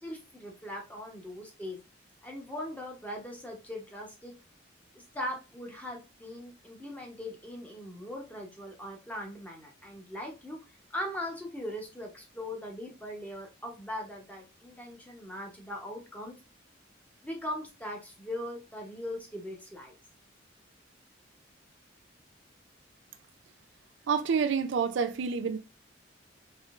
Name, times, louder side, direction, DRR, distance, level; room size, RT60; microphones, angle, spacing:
voice 1, 0.0-1.8 2.2-4.3 4.9-10.6 10.9-16.4 17.2-19.9, left 1 dB, 10° left, 0.9 m, -40 dB
voice 2, 24.1-25.6, right 6 dB, 70° right, 0.4 m, -28 dB
3.6 x 3.0 x 2.4 m
head